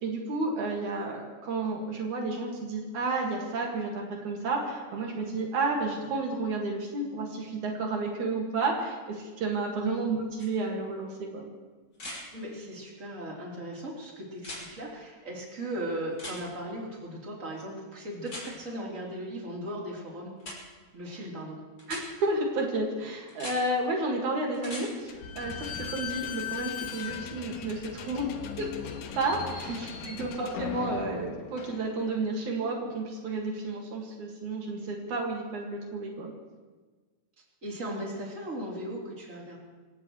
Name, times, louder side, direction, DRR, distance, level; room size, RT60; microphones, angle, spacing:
voice 1, 0.0-11.5 21.1-21.2 21.9-28.3 28.6-28.7 29.1-29.7 30.1-36.3, right 2 dB, 80° right, 0 dB, 3.5 m, -31 dB
sound 1, 10.4-10.5 11.9-12.2 14.4-14.6 16.2-16.4 18.3-18.5 20.4-20.6 21.8-22.0 23.3-23.6 24.5-24.9 26.9-27.0, left 1 dB, 40° left, 6.2 m, -39 dB
voice 2, 12.3-20.3 20.9-21.6 29.7-30.1 30.8-30.9 37.6-39.6, right 1 dB, 25° right, -4 dB, 3.9 m, -37 dB
Slam / Squeak, 25.1-32.4, left 7 dB, 90° left, 2.7 m, -38 dB
26.5 x 17.0 x 3.2 m, 1.4 s
omnidirectional pair, 3.4 m